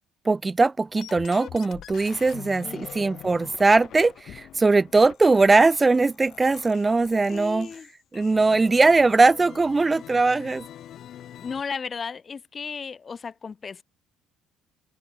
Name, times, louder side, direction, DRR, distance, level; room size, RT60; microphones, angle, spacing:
voice 1, 0.3-7.7 8.1-10.6, right 3 dB, 25° right, 0.5 m, -20 dB
sound 1, 0.9-11.6, left 11 dB, 60° left, 1.1 m, -44 dB
voice 2, 7.3-7.9 11.4-13.8, left 5 dB, 35° left, 2.0 m, -34 dB
open air
hypercardioid pair, 60°, 0 cm